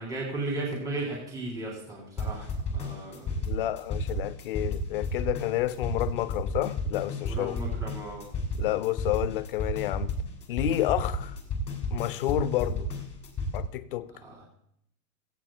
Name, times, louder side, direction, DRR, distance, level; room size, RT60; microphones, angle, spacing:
voice 1, 0.0-3.4 7.2-8.3 14.2-14.4, right 2 dB, 10° right, 3.1 m, -35 dB
sound 1, 2.2-13.6, left 1 dB, 15° left, 2.2 m, -32 dB
voice 2, 3.5-7.6 8.6-10.1 10.5-11.4 11.9-12.9 13.5-14.1, left 14 dB, 35° left, 0.5 m, -30 dB
16.5 x 16.5 x 2.3 m
supercardioid pair, 160°, 47 cm